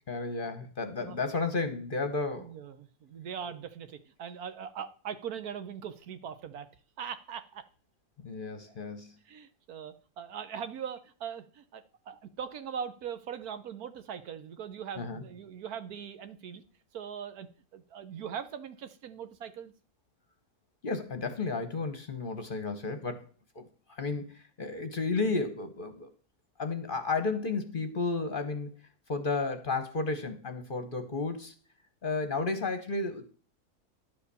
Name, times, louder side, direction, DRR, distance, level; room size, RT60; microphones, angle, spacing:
voice 1, 0.1-2.5 8.2-9.1 15.0-15.2 20.8-23.3 23.5-26.1 26.6-28.7 29.1-31.5 32.0-33.2, left 3 dB, 40° left, 9 dB, 1.0 m, -32 dB
voice 2, 2.3-6.7 7.0-7.6 8.7-8.8 9.2-16.6 16.9-17.5 17.7-19.7, right 8 dB, 80° right, 11 dB, 1.4 m, -41 dB
10.5 x 5.1 x 6.8 m, 0.40 s
omnidirectional pair, 1.6 m